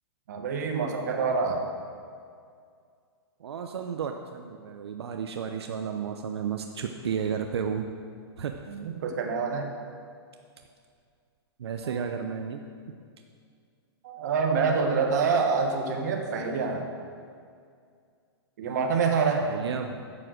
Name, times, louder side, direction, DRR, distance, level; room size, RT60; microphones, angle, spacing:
voice 1, 0.3-1.6 8.7-9.7 11.8-12.0 14.0-16.8 18.6-19.5, right 5 dB, 40° right, 2 dB, 1.4 m, -26 dB
voice 2, 3.4-7.9 8.4-8.6 11.6-12.6 19.4-20.0, right 7 dB, 75° right, 5 dB, 0.8 m, -32 dB
10.5 x 7.7 x 6.3 m, 2.2 s
hypercardioid pair, 180°, 14 cm